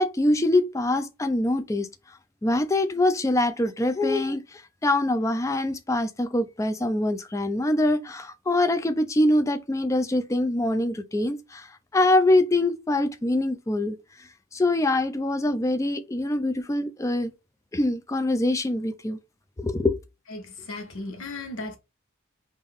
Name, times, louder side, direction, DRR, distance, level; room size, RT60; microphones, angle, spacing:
voice 1, 0.0-1.9 2.4-11.7 11.9-14.0 14.5-17.3 17.7-19.2 19.6-19.9, left 1 dB, 15° left, 0.3 m, -24 dB
voice 2, 20.3-21.8, left 2 dB, 65° left, 0.9 m, -36 dB
3.7 x 2.5 x 3.5 m
head